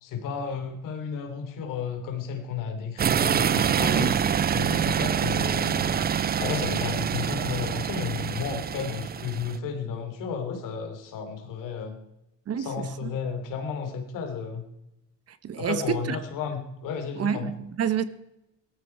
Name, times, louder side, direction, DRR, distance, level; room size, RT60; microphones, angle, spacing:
voice 1, 0.0-4.2 4.5-6.1 6.4-12.0 12.6-14.6 15.5-17.5, left 6 dB, 75° left, 3.3 m, -33 dB
sound 1, 3.0-9.6, right 8 dB, 30° right, 0.5 m, -26 dB
voice 2, 3.8-4.1 12.5-13.1 15.3-16.2 17.2-18.0, right 8 dB, 50° right, 1.4 m, -29 dB
17.5 x 13.0 x 4.6 m
cardioid pair, 90°, 32 cm